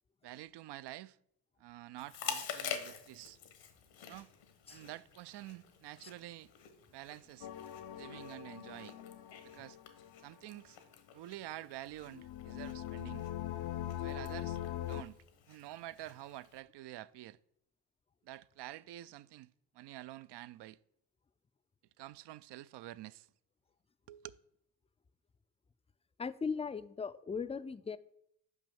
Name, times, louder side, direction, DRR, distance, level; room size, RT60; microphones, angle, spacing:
voice 1, 0.2-1.2 1.6-3.4 4.1-4.3 4.7-6.5 6.9-7.5 8.0-9.0 9.4-9.8 10.2-10.8 11.1-13.3 14.0-15.2 15.5-17.4 18.2-20.8 22.0-23.3 24.1-24.3, right 15 dB, 65° right, 0.5 m, -48 dB
Chewing mastication, 2.0-16.6, left 7 dB, 80° left, 1.4 m, -48 dB
sound 1, 7.4-10.2 12.0-15.0, left 12 dB, 60° left, 0.6 m, -42 dB
voice 2, 26.2-28.0, left 5 dB, 15° left, 0.4 m, -38 dB
6.1 x 5.4 x 7.0 m
supercardioid pair, 65°, 44 cm